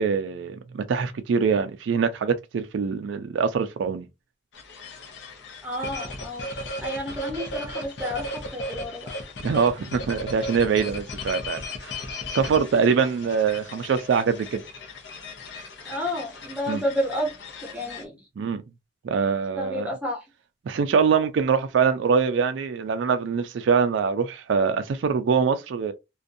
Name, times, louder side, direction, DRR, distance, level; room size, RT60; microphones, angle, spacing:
voice 1, 0.0-4.1 9.4-11.9 12.3-14.6 16.7-16.8 18.4-18.6 19.0-19.9 20.7-25.9, right 6 dB, 90° right, 0.4 m, -23 dB
sound 1, 4.5-18.0, left 1 dB, 70° left, 0.7 m, -36 dB
voice 2, 5.6-6.5 6.8-9.1 12.7-12.9 15.8-17.3 17.6-18.2 19.5-20.2, equal, 5° right, 0.6 m, -30 dB
2.5 x 2.2 x 2.5 m
head